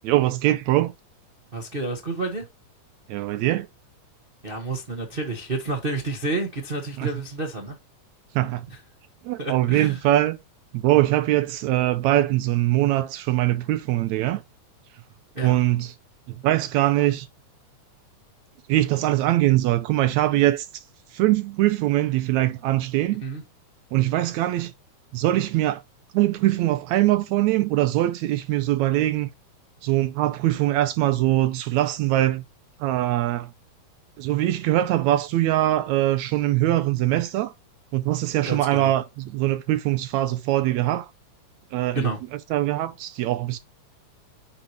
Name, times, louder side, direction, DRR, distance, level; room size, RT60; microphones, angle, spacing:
voice 1, 0.0-0.9 3.1-3.7 7.0-7.1 8.4-8.7 9.2-10.4 10.7-14.4 15.4-15.9 16.3-17.3 18.7-20.8 21.1-23.2 23.9-24.7 25.1-25.8 26.1-29.3 29.8-32.4 32.8-33.5 34.2-37.5 37.9-41.1 41.7-42.1 42.5-43.6, right 15 dB, 80° right, 1.8 m, -22 dB
voice 2, 1.5-2.5 4.4-7.8 8.7-8.8 9.4-10.0 15.3-15.6 23.2-23.4 38.4-38.9 41.9-42.2, right 2 dB, 65° right, 0.5 m, -30 dB
9.9 x 5.0 x 2.9 m
omnidirectional pair, 3.5 m